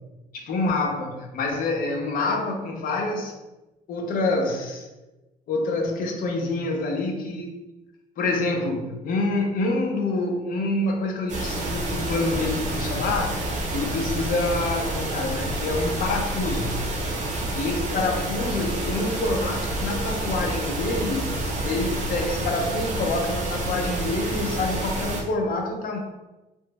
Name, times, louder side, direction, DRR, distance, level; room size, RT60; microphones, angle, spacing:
voice 1, 0.3-3.3 3.9-4.9 5.5-7.6 8.2-13.4 13.7-16.8 17.5-26.0, left 2 dB, 55° left, 2 dB, 0.6 m, -27 dB
sound 1, 11.3-25.2, right 1 dB, 45° right, 0.8 m, -28 dB
3.0 x 2.1 x 3.0 m, 1.1 s
cardioid pair, 110°, 17 cm